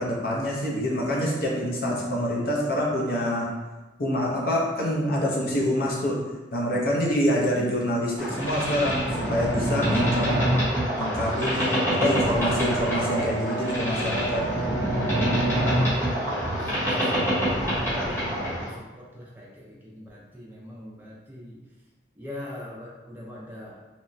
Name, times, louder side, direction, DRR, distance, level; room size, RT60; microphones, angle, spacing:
voice 1, 0.0-3.5 4.0-6.2 6.5-10.3 11.0-14.4, equal, 50° left, -3 dB, 0.6 m, -26 dB
Boat Water vehicle, 8.2-18.7, equal, 15° left, 0.9 m, -26 dB
Brass instrument, 11.6-15.8, right 5 dB, 70° left, 1.0 m, -34 dB
voice 2, 16.7-18.1 18.4-21.7 22.2-23.8, left 1 dB, 10° right, -5 dB, 0.4 m, -43 dB
2.9 x 2.1 x 2.5 m, 1.2 s
head